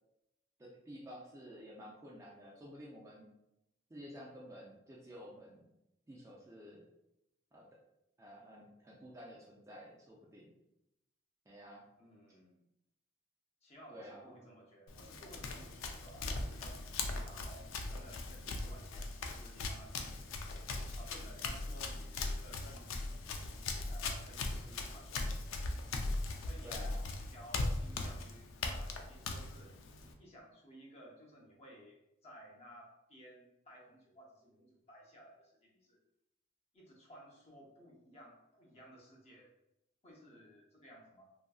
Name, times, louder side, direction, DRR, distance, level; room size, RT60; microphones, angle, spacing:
voice 1, 0.6-3.3 3.9-5.7 6.1-6.8 7.5-7.7 8.2-10.5 11.5-11.9 13.9-14.5 26.6-27.1, equal, 15° right, -3 dB, 0.3 m, -51 dB
voice 2, 12.0-12.6 13.6-16.8 17.2-20.5 21.0-23.5 23.9-25.7 26.4-29.7 30.2-36.0 36.7-39.5 40.0-41.3, equal, 30° left, -2 dB, 0.6 m, -57 dB
Run, 14.9-30.1, left 3 dB, 75° left, 0.4 m, -40 dB
2.7 x 2.5 x 2.3 m, 0.86 s
head